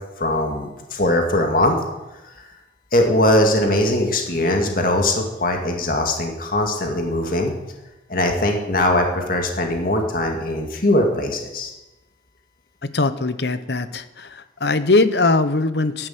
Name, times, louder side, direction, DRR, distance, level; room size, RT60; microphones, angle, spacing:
voice 1, 0.2-1.8 2.9-7.5 8.1-11.7, left 1 dB, 50° left, 3 dB, 2.2 m, -20 dB
voice 2, 12.9-16.1, left 3 dB, 65° left, 12 dB, 1.0 m, -20 dB
11.5 x 11.0 x 8.0 m, 1.0 s
head